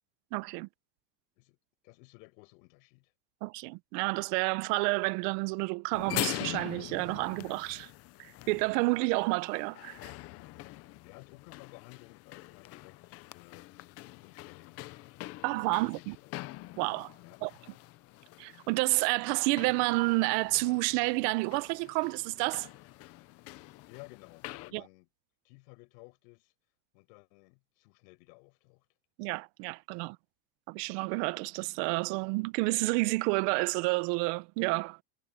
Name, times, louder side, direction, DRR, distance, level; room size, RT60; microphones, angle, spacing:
voice 1, 0.3-0.7 3.4-7.9 8.2-10.1 15.4-16.2 16.8-17.1 17.4-17.5 18.4-22.7 24.7-24.8 29.2-30.2 30.7-35.0, right 25 dB, 70° right, 0.9 m, -30 dB
voice 2, 1.8-3.1 11.0-13.7 14.1-15.2 15.6-16.4 17.2-17.4 23.9-25.1 25.4-26.5 26.9-28.8, left 28 dB, 75° left, 5.9 m, -55 dB
sound 1, 5.9-24.7, left 18 dB, 35° left, 0.4 m, -44 dB
cardioid pair, 160°, 49 cm